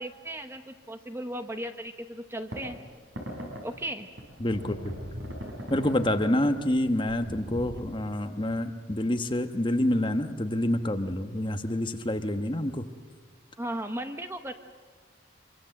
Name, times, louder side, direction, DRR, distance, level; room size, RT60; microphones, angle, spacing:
voice 1, 0.0-2.8 3.6-4.1 13.6-14.5, right 1 dB, 15° right, 7 dB, 0.9 m, -36 dB
sound 1, 2.5-2.6 3.2-3.6 4.2-6.2 6.6-6.8 7.0-7.8, equal, 70° right, 6.1 m, -38 dB
voice 2, 4.4-4.9 5.7-12.8, left 1 dB, 25° left, 7 dB, 1.1 m, -27 dB
25.0 x 23.5 x 7.7 m, 1.4 s
head